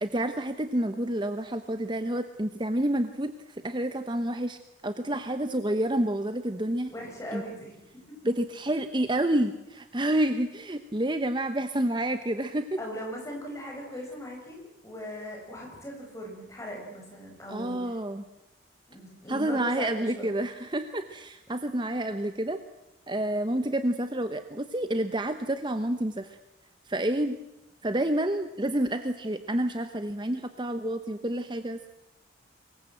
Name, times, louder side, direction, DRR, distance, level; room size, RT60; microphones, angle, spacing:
voice 1, 0.0-3.3 3.6-6.9 7.3-7.4 8.2-12.8 17.5-18.2 19.3-22.6 23.1-26.4 26.9-27.4 27.8-31.9, right 1 dB, 25° right, 9 dB, 1.0 m, -29 dB
voice 2, 6.9-8.2 12.8-14.6 14.8-17.9 18.9-20.4, equal, 15° left, 0 dB, 7.4 m, -39 dB
24.5 x 21.5 x 7.8 m, 0.92 s
head